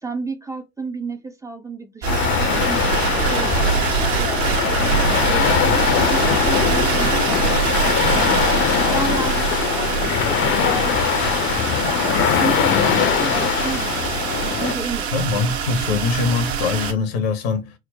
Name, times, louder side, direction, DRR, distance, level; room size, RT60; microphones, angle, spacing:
voice 1, 0.0-2.8 3.1-8.4 8.8-14.2 14.6-15.4, right 3 dB, 10° right, 0.5 m, -32 dB
sound 1, 2.0-14.7, left 8 dB, 35° left, 0.6 m, -21 dB
sound 2, 2.0-16.9, right 7 dB, 55° right, 1.0 m, -24 dB
voice 2, 15.1-17.7, left 4 dB, 65° left, 0.9 m, -22 dB
4.4 x 2.1 x 2.7 m
figure-of-eight pair, 70°, 34 cm